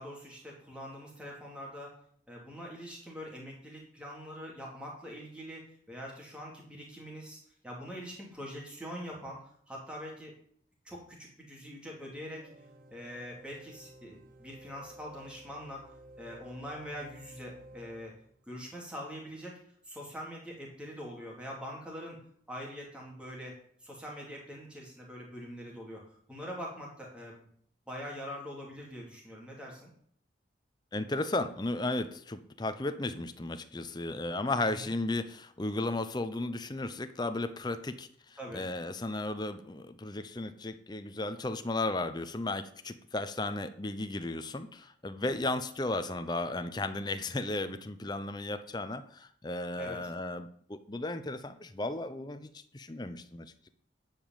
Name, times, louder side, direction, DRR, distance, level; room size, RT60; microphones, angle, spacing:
voice 1, 0.0-1.9 2.3-10.3 10.8-12.4 12.9-15.9 16.2-18.1 18.5-19.6 19.8-22.2 22.5-26.0 26.3-27.5 27.9-29.9 34.7-34.9 38.4-38.6 49.8-50.0, equal, 5° right, -2 dB, 2.9 m, -43 dB
sound 1, 12.4-18.5, right 1 dB, 50° right, 0.9 m, -54 dB
voice 2, 30.9-53.7, left 2 dB, 20° left, 10 dB, 0.6 m, -35 dB
10.5 x 5.1 x 7.4 m, 0.62 s
head